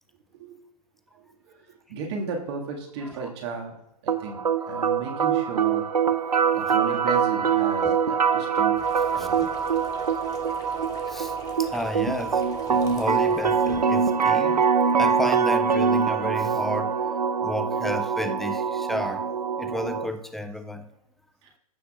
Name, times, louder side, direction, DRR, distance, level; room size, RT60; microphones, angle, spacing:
voice 1, 1.9-3.7 4.0-4.4 4.7-5.9 6.5-8.8 9.1-9.5, right 4 dB, 45° right, 1.9 m, -34 dB
voice 2, 3.0-3.3 5.6-5.7 6.2-6.3 7.8-8.0 9.0-9.3 11.1-14.7 15.0-17.0 17.4-19.3 19.6-20.9, left 1 dB, ahead, 0.4 m, -32 dB
sound 1, 4.1-20.1, right 6 dB, 85° right, 0.7 m, -24 dB
sound 2, 8.8-13.8, left 5 dB, 20° left, 1.0 m, -45 dB
15.0 x 5.8 x 2.4 m
figure-of-eight pair, 120°, 20 cm